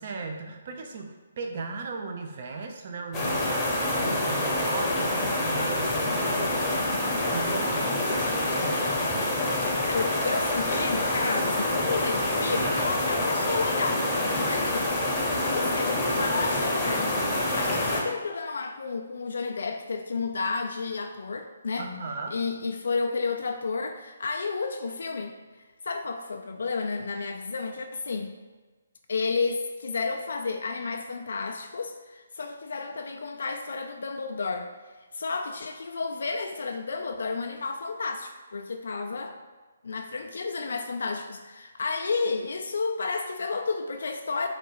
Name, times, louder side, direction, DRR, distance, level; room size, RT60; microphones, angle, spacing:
voice 1, 0.0-8.9 21.8-22.4, right 3 dB, 45° right, 3 dB, 0.6 m, -37 dB
sound 1, 3.1-18.0, left 1 dB, 15° left, 0.8 m, -27 dB
voice 2, 9.6-14.1 14.3-14.9 15.5-21.9 22.3-25.4 25.8-28.4 29.1-34.7 35.1-39.3 39.8-44.5, left 4 dB, 70° left, 4 dB, 0.3 m, -31 dB
3.9 x 2.3 x 4.6 m, 1.3 s
hypercardioid pair, 155°, 0 cm